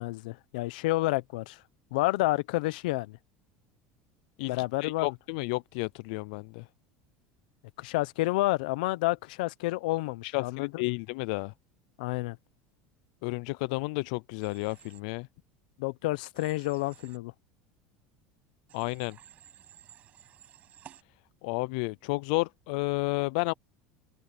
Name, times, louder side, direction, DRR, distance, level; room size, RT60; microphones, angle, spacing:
voice 1, 0.0-1.6 1.9-3.2 4.5-5.1 7.8-10.9 12.0-12.4 15.8-17.3, left 20 dB, 85° left, 0.8 m, -29 dB
voice 2, 4.4-6.7 10.2-11.5 13.2-15.3 18.7-19.2 21.4-23.5, left 25 dB, 70° left, 0.4 m, -32 dB
Human voice / Train, 14.4-15.0 16.3-17.2 18.7-21.0, right 10 dB, 30° right, 7.0 m, -54 dB
cardioid pair, 165°, 4 cm